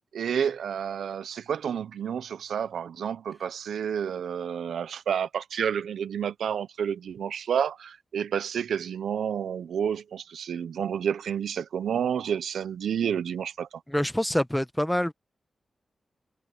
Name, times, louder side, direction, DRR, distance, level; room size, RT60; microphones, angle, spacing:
voice 1, 0.1-13.7, right 8 dB, 90° right, 0.8 m, -30 dB
voice 2, 13.9-15.1, equal, 5° left, 1.3 m, -26 dB
cardioid pair, 50°, 0 cm